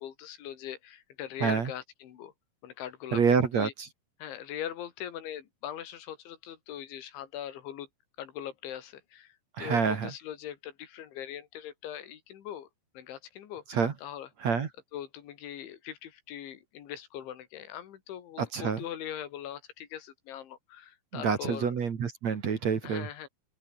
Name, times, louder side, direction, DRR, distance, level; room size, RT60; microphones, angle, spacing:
voice 1, 0.0-2.3 2.6-3.7 4.2-7.9 8.2-12.7 12.9-14.3 14.9-21.7 22.8-23.3, left 10 dB, 90° left, 4.8 m, -41 dB
voice 2, 3.1-3.9 9.6-10.1 13.7-13.9 14.4-14.7 18.4-18.8 21.1-23.1, right 6 dB, 45° right, 2.9 m, -27 dB
open air
omnidirectional pair, 5.2 m